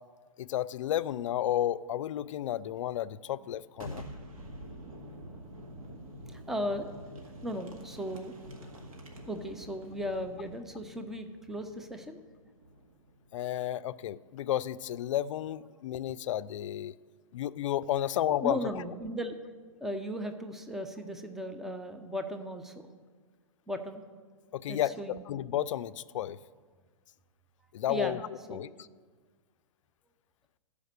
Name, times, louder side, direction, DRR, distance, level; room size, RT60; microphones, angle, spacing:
voice 1, 0.4-4.0 13.3-17.0 17.3-18.6 24.5-26.4 27.7-28.2 28.5-28.7, left 12 dB, 60° left, 16 dB, 0.4 m, -32 dB
Boom, 3.7-13.3, equal, 75° right, 2.0 m, -47 dB
voice 2, 6.3-6.9 7.4-8.4 9.3-12.2 18.4-19.4 19.8-22.9 23.7-24.0 24.7-25.2 27.9-28.2 28.5-28.6, equal, ahead, 7 dB, 0.5 m, -36 dB
13.5 x 5.1 x 6.6 m, 1.5 s
hypercardioid pair, 145°, 18 cm